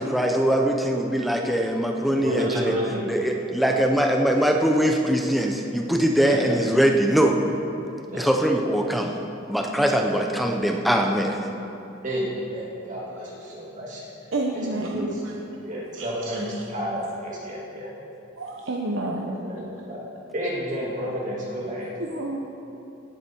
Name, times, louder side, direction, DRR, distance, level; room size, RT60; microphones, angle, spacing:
voice 1, 0.0-2.7 3.1-7.4 8.1-9.1 9.5-11.4, right 1 dB, ahead, 2 dB, 0.6 m, -22 dB
voice 2, 2.1-3.0 3.5-3.8 6.3-6.6 8.1-8.3 12.0-14.0 14.5-15.2 15.6-17.9 19.2-20.0 20.3-21.9, equal, 40° right, -5 dB, 2.3 m, -31 dB
voice 3, 14.3-15.3 16.0-16.4 17.0-17.1 18.4-19.5 22.0-22.4, right 2 dB, 70° right, -1 dB, 0.9 m, -30 dB
18.0 x 8.2 x 4.5 m, 2.9 s
head